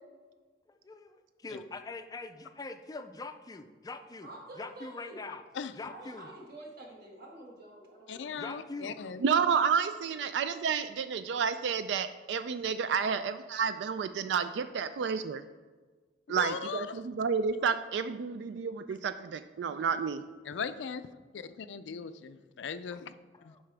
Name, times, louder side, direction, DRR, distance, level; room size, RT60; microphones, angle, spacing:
voice 1, 0.7-4.3 4.6-5.4 5.7-6.3 8.4-9.0 22.9-23.0 23.3-23.6, left 3 dB, 20° left, 9 dB, 0.4 m, -43 dB
voice 2, 4.2-5.2 5.9-8.2, right 1 dB, 60° right, -1 dB, 1.7 m, -48 dB
voice 3, 8.1-9.2 16.3-17.0 20.5-21.1 21.3-23.1 23.4-23.5, left 6 dB, 85° left, 12 dB, 0.4 m, -38 dB
voice 4, 9.2-15.4 16.3-20.2, right 6 dB, 75° right, 11 dB, 0.3 m, -30 dB
8.7 x 5.6 x 3.4 m, 1.4 s
head